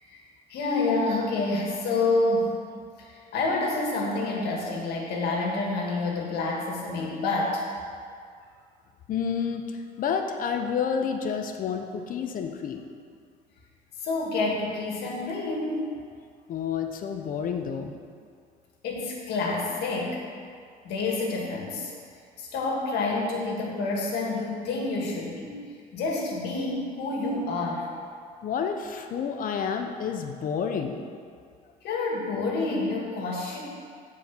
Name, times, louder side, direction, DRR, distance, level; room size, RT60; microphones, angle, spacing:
voice 1, 0.5-2.5 3.0-7.6 14.0-15.9 18.8-20.2 20.8-21.9 22.4-25.6 25.9-27.9 31.8-33.6, left 3 dB, 75° left, -2 dB, 2.0 m, -28 dB
voice 2, 9.1-12.8 16.5-17.9 28.4-31.0, left 6 dB, 55° left, 5 dB, 0.9 m, -29 dB
8.0 x 4.9 x 7.1 m, 2.2 s
cardioid pair, 110°, 17 cm